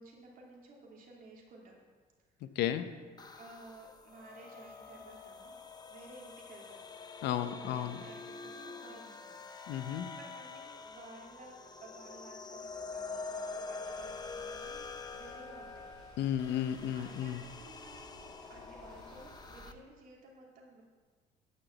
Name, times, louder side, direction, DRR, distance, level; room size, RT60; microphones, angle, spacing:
voice 1, 0.0-1.8 3.3-5.6 5.9-6.8 7.6-9.4 9.7-9.9 10.1-15.9 16.9-20.8, right 2 dB, 55° right, -2 dB, 2.8 m, -54 dB
voice 2, 2.4-2.8 7.2-8.0 9.7-10.1 16.2-17.4, left 10 dB, 80° left, 10 dB, 0.8 m, -33 dB
sound 1, 3.2-19.7, left 4 dB, 25° left, 0.7 m, -46 dB
sound 2, 13.8-19.7, right 1 dB, 25° right, 3.1 m, -57 dB
9.8 x 6.1 x 7.2 m, 1.5 s
cardioid pair, 110°, 17 cm